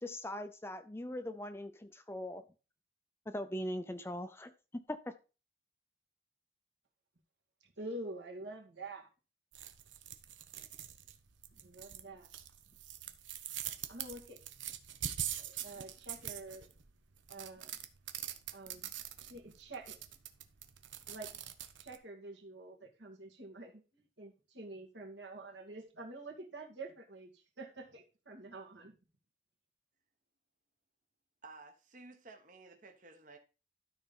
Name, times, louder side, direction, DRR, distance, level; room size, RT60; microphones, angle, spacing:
voice 1, 0.0-2.4 3.3-4.5 4.9-5.2, left 1 dB, 15° left, 0.5 m, -40 dB
voice 2, 7.6-9.1 11.6-12.3 13.9-14.4 15.4-16.7 17.3-17.8 18.5-18.9 19.3-20.0 21.1-21.4 21.8-28.9, right 2 dB, 70° right, 2.3 m, -47 dB
sound 1, 9.5-22.0, right 10 dB, 85° right, 1.0 m, -44 dB
voice 3, 31.4-33.4, right 3 dB, 45° right, 1.1 m, -54 dB
12.5 x 4.4 x 5.4 m
head